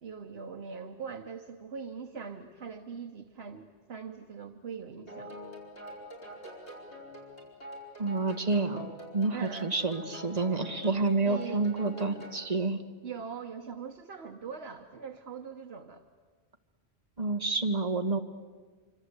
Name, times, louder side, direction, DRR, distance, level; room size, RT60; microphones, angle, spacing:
voice 1, 0.0-5.4 9.3-9.8 11.2-11.7 13.0-16.0, right 6 dB, 75° right, 5 dB, 1.3 m, -42 dB
sound 1, 5.1-12.4, equal, 90° left, 5.1 m, -46 dB
voice 2, 8.0-12.8 17.2-18.2, right 3 dB, 40° right, 6 dB, 1.6 m, -29 dB
26.5 x 25.5 x 8.1 m, 1.5 s
omnidirectional pair, 1.1 m